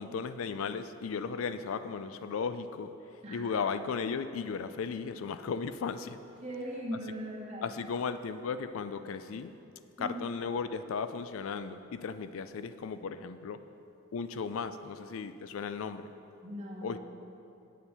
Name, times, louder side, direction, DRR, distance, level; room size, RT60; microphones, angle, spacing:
voice 1, 0.0-2.9 3.3-6.2 7.6-9.5 10.0-13.6 14.1-16.0 16.8-17.0, left 5 dB, 85° left, 11 dB, 0.4 m, -35 dB
voice 2, 6.4-7.7 10.0-10.3 16.4-17.0, equal, 35° right, -5 dB, 1.8 m, -39 dB
8.3 x 7.2 x 5.4 m, 2.8 s
head